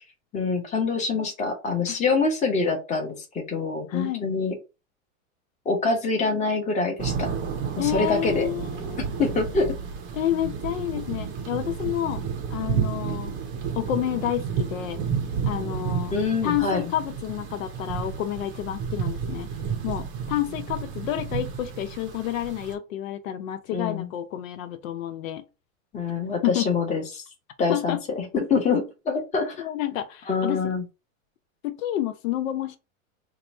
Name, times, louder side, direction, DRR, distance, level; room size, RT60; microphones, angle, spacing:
voice 1, 0.3-4.6 5.6-7.3 7.8-8.5 9.2-9.7 16.1-16.9 23.7-24.1 25.9-27.2 27.6-29.7 30.3-30.8, left 4 dB, 15° left, 0.9 m, -25 dB
voice 2, 3.9-4.3 7.8-9.0 10.1-12.2 12.5-13.3 13.8-15.0 15.4-16.2 16.4-19.5 19.8-25.4 26.4-26.6 27.7-28.0 29.6-30.6 31.6-32.8, left 12 dB, 75° left, 0.6 m, -29 dB
sound 1, 7.0-22.7, right 6 dB, 30° right, 0.6 m, -31 dB
2.9 x 2.3 x 4.0 m
supercardioid pair, 140°, 40 cm